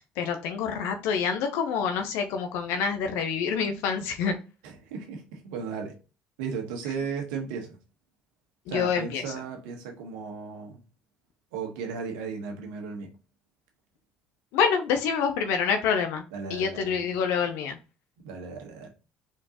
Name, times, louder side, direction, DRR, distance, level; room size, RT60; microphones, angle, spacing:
voice 1, 0.2-4.3 8.7-9.2 14.5-16.2 16.5-17.8, left 6 dB, 75° left, 0.7 m, -27 dB
voice 2, 4.6-6.0 6.4-7.7 8.7-10.7 11.5-13.1 16.3-17.1 18.2-18.9, right 5 dB, 85° right, 1.3 m, -35 dB
4.4 x 3.7 x 2.9 m
hypercardioid pair, 70°, 4 cm